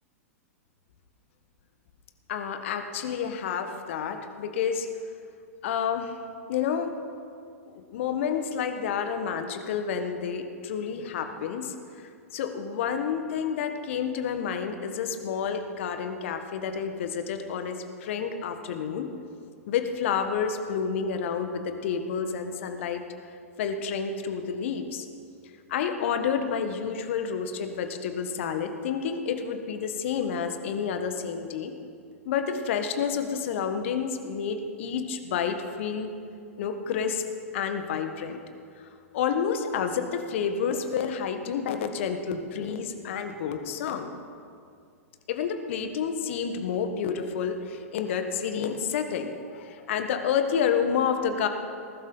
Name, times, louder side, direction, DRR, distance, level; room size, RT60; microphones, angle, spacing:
voice 1, 2.3-4.9 5.6-6.2 6.5-7.0 7.7-19.1 19.7-23.0 23.6-25.1 25.7-31.7 32.2-36.1 36.6-37.2 37.5-38.4 38.8-38.9 39.1-44.1 45.3-51.5, left 7 dB, 55° left, 7 dB, 1.5 m, -29 dB
19.5 x 12.0 x 4.0 m, 2.3 s
figure-of-eight pair, 105°, 8 cm